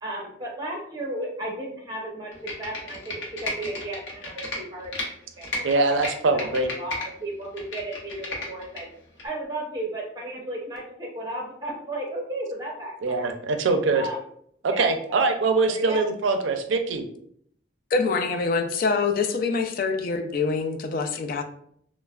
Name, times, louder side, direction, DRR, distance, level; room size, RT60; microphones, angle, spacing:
voice 1, 0.0-5.6 6.1-8.9 9.2-13.3 13.9-14.2 14.7-15.2 15.7-16.0, right 1 dB, 20° right, -2 dB, 0.7 m, -34 dB
Computer keyboard, 2.3-5.1 5.4-7.1 7.4-8.8 9.2-9.3, left 2 dB, 80° left, 0.7 m, -33 dB
voice 2, 5.6-6.7 13.0-14.0 14.6-17.0, right 3 dB, 85° right, 6 dB, 0.4 m, -23 dB
voice 3, 17.9-21.4, left 4 dB, 50° left, 6 dB, 0.3 m, -25 dB
3.1 x 2.0 x 2.3 m, 0.66 s
head